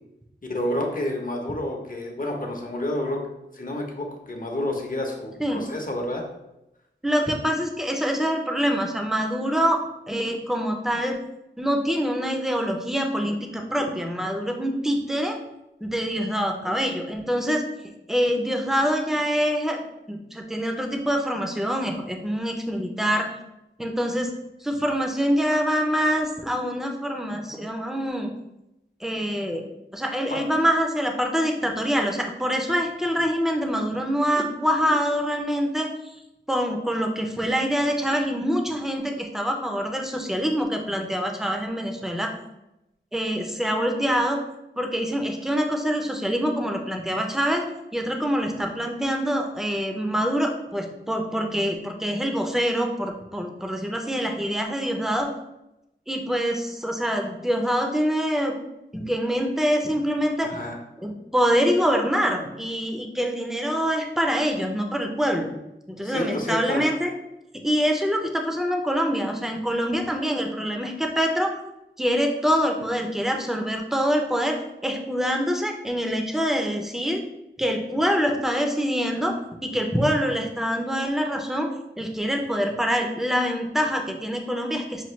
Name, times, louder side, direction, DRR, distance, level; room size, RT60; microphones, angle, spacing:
voice 1, 0.4-3.3 3.5-6.2 30.3-30.4 60.4-60.8 66.0-66.8, left 1 dB, 45° left, 1 dB, 0.8 m, -29 dB
voice 2, 7.0-11.1 11.6-15.4 15.8-17.6 18.1-23.3 23.8-24.3 24.6-28.3 29.0-29.6 29.9-35.9 36.5-42.3 43.1-44.4 44.8-47.6 47.9-55.3 56.1-58.5 58.9-60.5 61.0-65.5 65.9-67.1 67.6-71.5 72.0-77.2 77.6-81.7 82.0-85.0, equal, ahead, 3 dB, 0.5 m, -25 dB
5.7 x 2.3 x 3.1 m, 0.90 s
wide cardioid pair, 70°, 19 cm